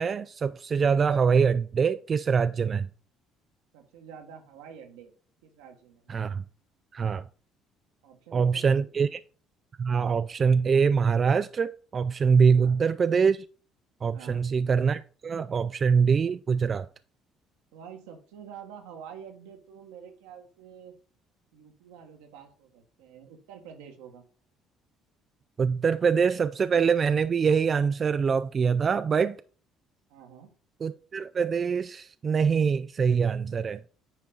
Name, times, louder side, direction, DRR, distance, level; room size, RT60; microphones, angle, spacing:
voice 1, 0.0-2.9 6.1-6.4 6.9-7.2 8.3-9.2 9.8-13.4 14.0-16.9 25.6-29.4 30.8-33.8, right 6 dB, 40° right, 0.3 m, -24 dB
voice 2, 3.7-5.1 5.4-6.1 8.0-9.1 12.5-12.8 14.1-14.4 17.7-20.9 21.5-24.2 30.1-30.5, right 8 dB, 80° right, 1.5 m, -47 dB
9.5 x 4.4 x 3.8 m
hypercardioid pair, 60°, 0 cm